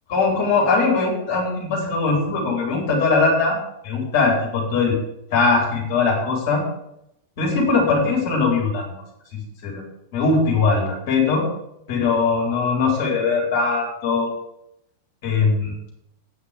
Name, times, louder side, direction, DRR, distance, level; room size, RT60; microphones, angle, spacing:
voice 1, 0.1-3.6 3.8-5.0 5.3-6.6 7.4-8.9 9.3-9.8 10.1-11.5 11.9-14.3 15.2-15.8, left 4 dB, 50° left, -1 dB, 4.4 m, -20 dB
9.1 x 7.3 x 8.5 m, 0.79 s
figure-of-eight pair, 90°, 0 cm